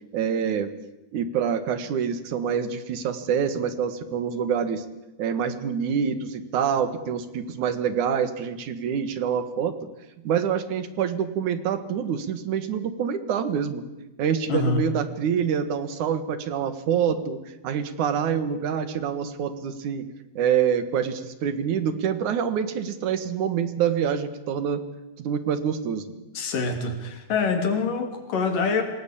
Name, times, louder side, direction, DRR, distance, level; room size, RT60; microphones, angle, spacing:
voice 1, 0.1-0.7 1.1-4.8 5.2-9.7 10.2-13.8 14.2-17.4 17.6-20.0 20.4-24.8 25.2-26.0, right 7 dB, 70° right, 12 dB, 3.0 m, -26 dB
voice 2, 14.5-14.8 26.3-28.8, left 4 dB, 85° left, 6 dB, 4.5 m, -25 dB
27.0 x 18.5 x 8.6 m, 0.99 s
omnidirectional pair, 3.7 m